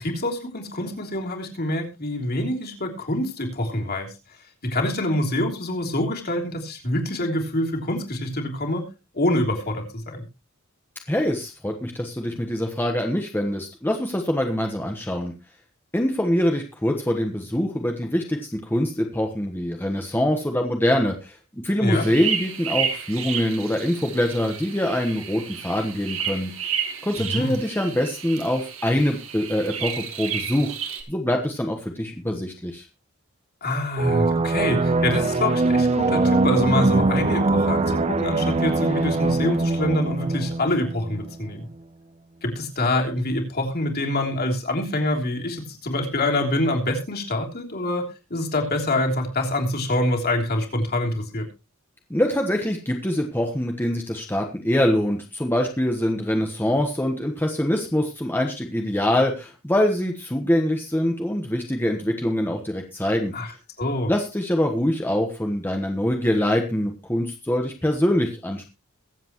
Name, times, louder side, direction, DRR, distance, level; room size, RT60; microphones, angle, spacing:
voice 1, 0.0-4.1 4.6-8.8 9.1-10.2 21.8-22.1 27.2-27.6 33.6-41.7 42.4-48.0 48.3-51.5 63.3-63.5 63.8-64.1, left 1 dB, 50° left, 1 dB, 3.3 m, -25 dB
voice 2, 11.1-15.3 15.9-26.5 27.0-30.7 31.1-32.8 52.1-63.3 64.1-68.7, left 1 dB, 10° left, 2 dB, 1.2 m, -24 dB
sound 1, 21.9-31.0, right 7 dB, 75° right, 2.4 m, -31 dB
sound 2, 34.0-41.4, right 3 dB, 30° right, 0.7 m, -22 dB
22.5 x 7.9 x 3.1 m, 0.29 s
head